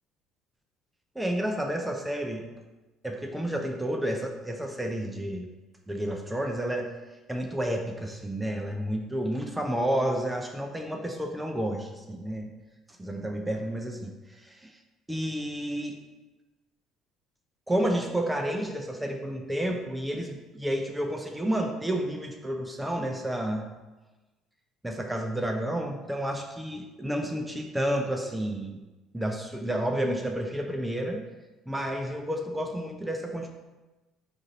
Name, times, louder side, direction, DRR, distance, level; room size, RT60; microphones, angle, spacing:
voice 1, 1.2-2.4 3.0-5.5 5.9-6.9 7.3-12.5 13.0-14.8 15.1-16.0 17.7-23.6 24.8-28.8 29.1-31.2 31.7-33.5, right 1 dB, 5° right, 2 dB, 0.5 m, -30 dB
3.8 x 2.6 x 4.0 m, 1.1 s
figure-of-eight pair, 55°, 0 cm